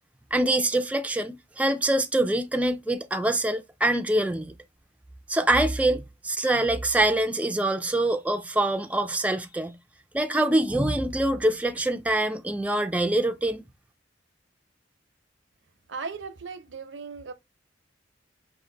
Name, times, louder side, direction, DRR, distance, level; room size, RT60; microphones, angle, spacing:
voice 1, 0.3-4.5 5.3-9.8 10.1-13.6, right 1 dB, 10° right, 0.3 m, -25 dB
voice 2, 15.9-17.3, right 5 dB, 80° right, 0.7 m, -37 dB
5.0 x 2.5 x 3.7 m
head